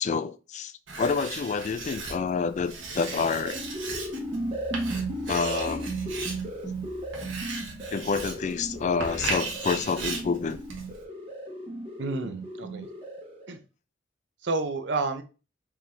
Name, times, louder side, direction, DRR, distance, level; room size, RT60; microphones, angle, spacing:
voice 1, 0.0-3.6 5.3-5.9 7.9-10.6, left 5 dB, 35° left, 0.3 m, -28 dB
Writing, 0.9-11.0, right 3 dB, 80° right, 1.2 m, -37 dB
sound 1, 3.0-13.5, right 1 dB, 30° right, 1.4 m, -36 dB
voice 2, 12.0-12.9 13.5-13.6 14.4-15.2, right 3 dB, 65° right, 0.7 m, -30 dB
4.5 x 3.7 x 2.6 m
head